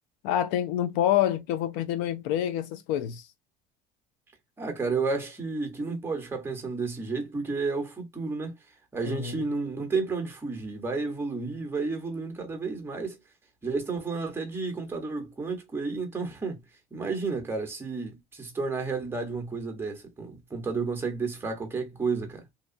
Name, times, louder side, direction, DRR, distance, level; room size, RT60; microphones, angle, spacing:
voice 1, 0.2-3.2 9.0-9.3, left 11 dB, 80° left, 0.5 m, -27 dB
voice 2, 4.6-8.5 8.9-13.2 13.6-16.6 16.9-22.4, right 4 dB, 15° right, 0.9 m, -31 dB
2.8 x 2.1 x 2.5 m
cardioid pair, 120°, 17 cm